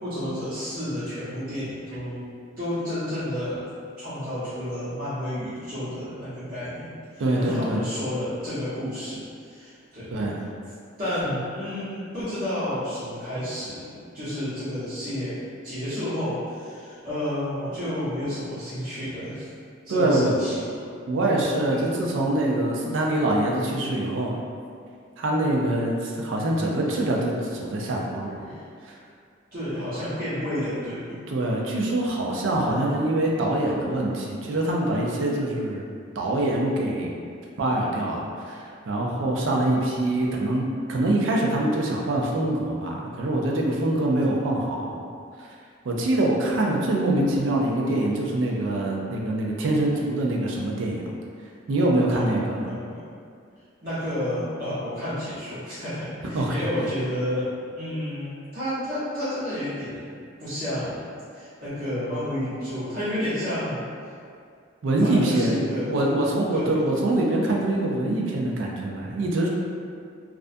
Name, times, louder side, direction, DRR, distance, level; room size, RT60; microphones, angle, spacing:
voice 1, 0.0-2.2 2.6-3.7 4.0-6.9 7.4-10.1 11.0-19.5 19.8-20.8 21.7-21.9 28.5-28.6 29.5-31.2 39.4-39.8 52.1-53.0 53.8-61.1 61.3-63.8 65.0-66.2 66.5-66.8, left 1 dB, 45° right, -14 dB, 1.0 m, -31 dB
voice 2, 7.2-7.9 10.1-10.4 19.9-20.4 21.1-24.4 25.2-28.6 28.9-29.0 31.3-35.8 36.2-37.1 37.6-45.0 45.8-51.0 51.7-52.7 56.3-56.6 64.8-65.6 65.9-69.5, right 1 dB, 75° right, -2 dB, 0.4 m, -24 dB
2.4 x 2.1 x 2.5 m, 2.3 s
head